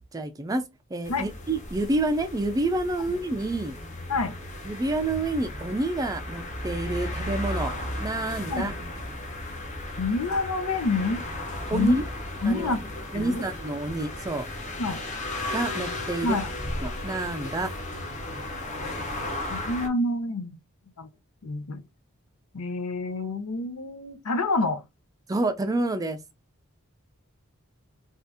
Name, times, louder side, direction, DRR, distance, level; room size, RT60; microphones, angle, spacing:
voice 1, 0.1-0.6 0.9-3.8 4.6-7.7 8.0-8.7 11.7-12.0 12.5-12.7 13.1-14.5 15.5-16.4 16.8-17.7 25.3-26.2, right 2 dB, 15° right, 0.3 m, -28 dB
sound 1, 1.0-19.9, left 1 dB, 35° left, 0.7 m, -35 dB
voice 2, 10.0-11.2 11.7-12.0 12.4-12.8 13.1-13.4 14.8-15.0 16.2-16.5 19.5-20.6 21.0-21.1 21.4-21.8 22.5-24.8, left 2 dB, 80° left, 0.6 m, -27 dB
2.7 x 2.4 x 3.4 m
head